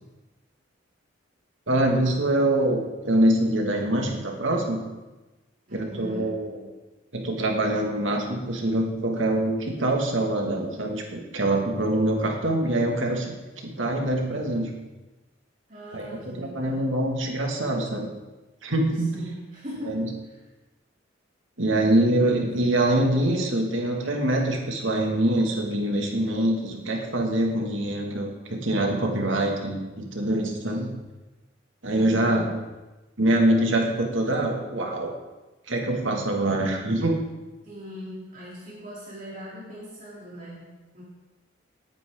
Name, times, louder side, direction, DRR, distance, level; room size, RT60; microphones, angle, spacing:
voice 1, 1.7-4.8 5.7-6.5 7.1-13.3 13.6-14.7 15.9-18.1 18.6-19.2 19.9-20.1 21.6-30.9 31.8-32.5 33.2-35.1 35.7-37.2, right 1 dB, 85° right, 1 dB, 2.3 m, -24 dB
voice 2, 5.7-6.3 15.7-17.0 19.1-20.4 31.9-32.5 37.6-41.0, equal, 45° right, -7 dB, 3.6 m, -40 dB
19.0 x 8.9 x 3.9 m, 1.1 s
head